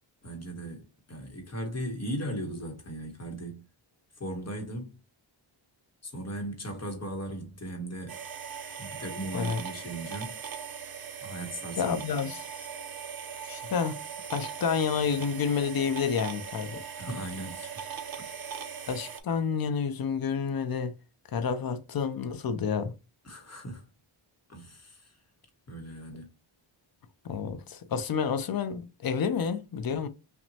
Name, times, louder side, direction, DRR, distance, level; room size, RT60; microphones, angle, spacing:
voice 1, 0.2-0.8 1.1-3.6 4.2-4.9 6.0-8.2 8.8-10.3 11.2-12.2 17.0-17.9 18.2-18.9 23.2-23.8 24.5-25.1 25.7-26.3, right 1 dB, 30° left, 1.0 m, -38 dB
sound 1, 8.1-19.2, right 7 dB, 45° right, 0.6 m, -40 dB
voice 2, 11.8-12.5 13.4-14.0 14.3-16.8 18.9-21.0 21.3-22.9 27.2-30.1, left 6 dB, 50° left, 0.5 m, -29 dB
5.8 x 2.1 x 2.7 m
wide cardioid pair, 165°, 50 cm